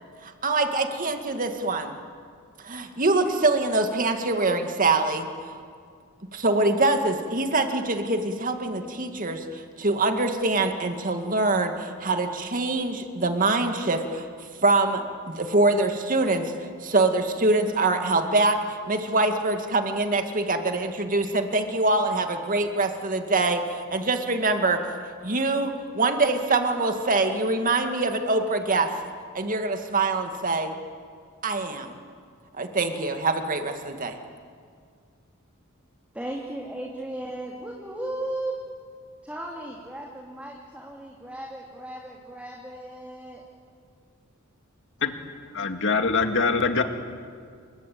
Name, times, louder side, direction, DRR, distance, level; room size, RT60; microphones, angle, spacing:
voice 1, 0.2-2.0 2.6-5.5 6.3-14.3 14.6-16.5 16.8-18.6 18.9-24.9 25.2-28.9 29.3-30.7 31.4-31.9 32.6-34.2, right 2 dB, 40° right, 6 dB, 2.2 m, -24 dB
voice 2, 36.1-38.6 39.2-43.4, right 1 dB, 5° right, -2 dB, 2.9 m, -36 dB
voice 3, 45.5-46.8, left 4 dB, 60° left, 6 dB, 2.3 m, -23 dB
29.0 x 24.0 x 8.7 m, 2.1 s
head